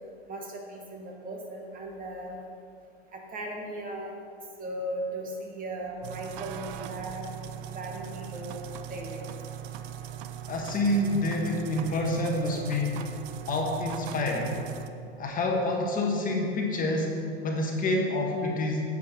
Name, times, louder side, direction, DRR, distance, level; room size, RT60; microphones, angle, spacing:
voice 1, 0.3-2.4 3.1-4.1 4.6-7.3 7.6-9.2, right 1 dB, 25° right, 1 dB, 1.3 m, -37 dB
sound 1, 6.0-14.9, right 10 dB, 50° right, 0.7 m, -40 dB
voice 2, 10.5-13.0 13.5-14.6 15.2-18.8, left 1 dB, 25° left, 0 dB, 1.4 m, -28 dB
11.0 x 7.9 x 3.7 m, 2.5 s
hypercardioid pair, 115°, 33 cm